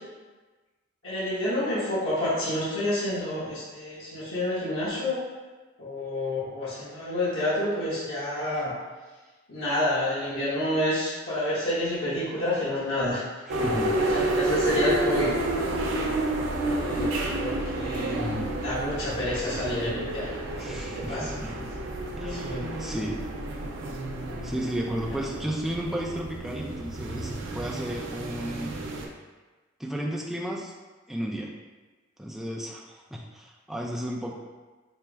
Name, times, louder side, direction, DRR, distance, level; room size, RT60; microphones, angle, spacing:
voice 1, 1.0-5.2 5.8-8.7 9.5-13.2 13.6-15.3 16.6-17.1 17.4-21.6 22.2-22.7, left 1 dB, 85° left, -11 dB, 1.1 m, -29 dB
voice 2, 13.5-14.0 20.6-21.5 22.2-23.2 24.4-28.8 29.8-30.7 31.1-31.5 32.2-34.3, equal, ahead, -2 dB, 0.3 m, -33 dB
sound 1, 13.5-29.1, right 1 dB, 70° right, 0.4 m, -30 dB
4.3 x 2.0 x 3.4 m, 1.3 s
head